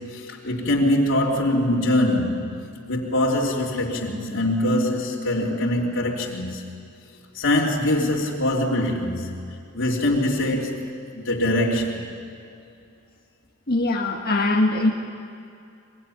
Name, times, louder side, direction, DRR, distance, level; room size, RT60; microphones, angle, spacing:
voice 1, 0.0-6.6 7.3-9.4 9.7-12.1, left 1 dB, 65° left, -5 dB, 3.3 m, -23 dB
voice 2, 13.7-14.9, left 2 dB, 50° left, 0 dB, 1.6 m, -22 dB
24.0 x 23.0 x 10.0 m, 2.5 s
head